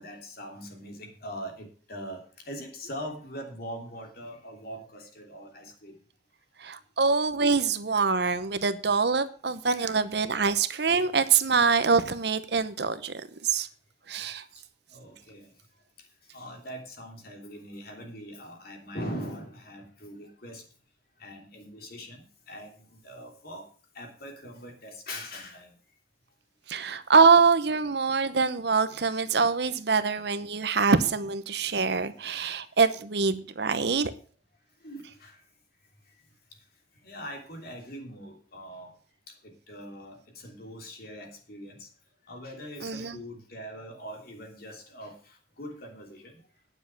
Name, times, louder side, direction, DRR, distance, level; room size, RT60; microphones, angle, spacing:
voice 1, 0.0-2.2 2.5-5.9 9.7-10.0 14.9-15.5 16.3-20.6 21.2-22.7 23.0-23.6 24.0-25.7 34.8-35.3 37.0-38.9 39.7-40.2 40.4-41.9 42.3-45.2 45.6-46.3, equal, 55° left, 3.0 m, -41 dB
voice 2, 6.6-13.1 13.4-13.7 14.1-14.4 26.7-34.1 42.8-43.2, right 5 dB, 60° right, 0.9 m, -24 dB
9.8 x 7.3 x 7.5 m
head